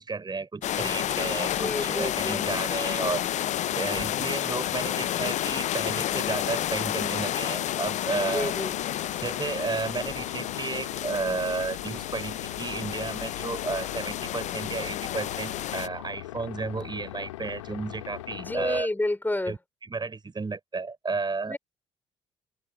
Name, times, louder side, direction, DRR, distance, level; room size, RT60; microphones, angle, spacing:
voice 1, 0.0-3.2 3.7-8.5 9.2-18.9 19.4-21.6, right 4 dB, 25° right, 6.1 m, -32 dB
sound 1, 0.6-15.9, left 12 dB, 50° left, 0.8 m, -30 dB
sound 2, 1.3-18.8, left 16 dB, 75° left, 1.3 m, -41 dB
voice 2, 1.5-2.5 8.2-8.8 18.4-19.6 21.5-21.6, left 2 dB, 10° left, 5.8 m, -30 dB
figure-of-eight pair, 45°, 16 cm